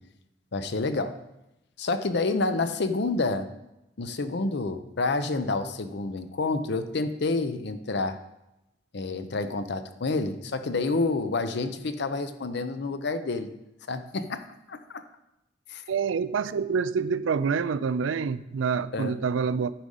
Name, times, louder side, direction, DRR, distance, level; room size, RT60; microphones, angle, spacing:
voice 1, 0.5-1.2 1.8-3.5 4.0-8.2 8.9-13.5 13.9-14.4 14.7-15.0 15.7-15.8 18.9-19.2, left 3 dB, 65° left, 10 dB, 0.7 m, -28 dB
voice 2, 15.9-19.7, right 5 dB, 90° right, 15 dB, 0.4 m, -27 dB
10.0 x 4.9 x 5.5 m, 0.90 s
head